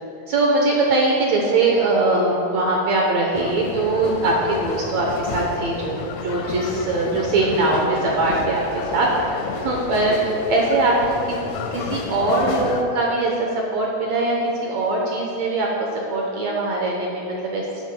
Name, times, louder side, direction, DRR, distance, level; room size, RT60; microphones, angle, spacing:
voice 1, 0.3-10.9 11.3-15.7 16.1-17.6, right 2 dB, 80° right, -2 dB, 1.5 m, -21 dB
sound 1, 3.3-12.8, left 5 dB, 90° left, 2.6 m, -31 dB
12.5 x 12.0 x 2.2 m, 2.9 s
omnidirectional pair, 4.4 m